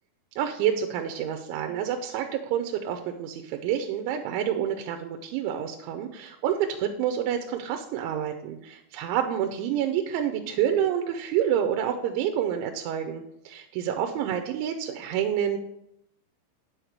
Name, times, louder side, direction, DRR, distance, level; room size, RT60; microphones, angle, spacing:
voice 1, 0.4-15.6, right 9 dB, 80° right, 5 dB, 3.0 m, -28 dB
9.7 x 6.5 x 4.7 m, 0.79 s
omnidirectional pair, 5.6 m